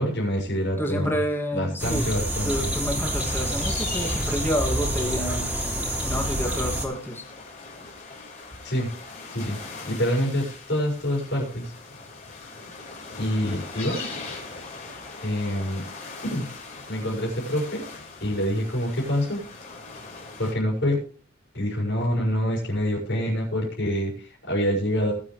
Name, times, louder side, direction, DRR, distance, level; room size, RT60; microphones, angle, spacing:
voice 1, 0.0-1.2 1.5-2.7 8.6-8.9 9.3-9.6 9.8-11.7 13.2-14.1 15.2-15.8 16.2-16.5 16.9-17.8 18.2-19.4 20.4-21.0 21.5-25.1, equal, 65° left, -2 dB, 6.6 m, -26 dB
voice 2, 0.8-2.1 2.4-5.5 6.0-7.2, equal, 10° left, 1 dB, 2.6 m, -29 dB
sound 1, 1.8-6.9, right 1 dB, 5° right, 3.1 m, -27 dB
sound 2, 3.1-20.5, left 4 dB, 40° left, 4.7 m, -41 dB
21.0 x 7.6 x 3.4 m, 0.43 s
head